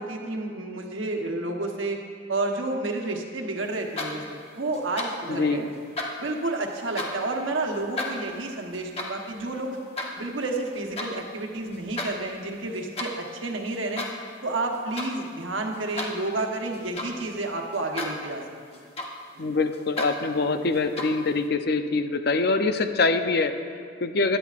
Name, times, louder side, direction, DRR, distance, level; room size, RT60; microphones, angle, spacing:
voice 1, 0.0-2.0 2.3-5.7 6.2-9.8 10.2-14.1 14.4-18.4 18.7-18.8 19.4-19.5, right 2 dB, 90° right, 2 dB, 1.1 m, -30 dB
sound 1, 3.7-4.4 4.7-5.3 5.7-7.3 7.7-11.1 11.6-12.1 12.4-13.2 13.7-14.3 14.6-15.2 15.5-17.3 17.7-18.3 18.5-19.4 19.7-20.1 20.7-21.3, left 2 dB, 30° left, 1.1 m, -34 dB
voice 2, 5.3-5.7 19.4-24.4, left 3 dB, 55° left, 8 dB, 0.6 m, -24 dB
16.5 x 11.0 x 2.5 m, 2.2 s
head